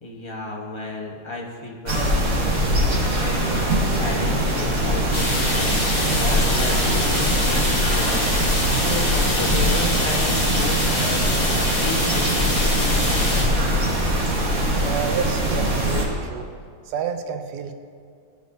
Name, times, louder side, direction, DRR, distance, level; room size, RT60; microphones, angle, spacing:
voice 1, 0.0-2.6 2.9-13.6, left 3 dB, 25° left, -3 dB, 0.6 m, -33 dB
sound 1, 1.9-16.0, equal, 50° right, 1.8 m, -22 dB
sound 2, 5.1-13.4, left 1 dB, 75° left, 3.0 m, -25 dB
voice 2, 14.8-16.5 16.8-17.7, right 7 dB, 70° right, 7 dB, 1.1 m, -29 dB
14.0 x 5.0 x 2.6 m, 2.2 s
omnidirectional pair, 2.0 m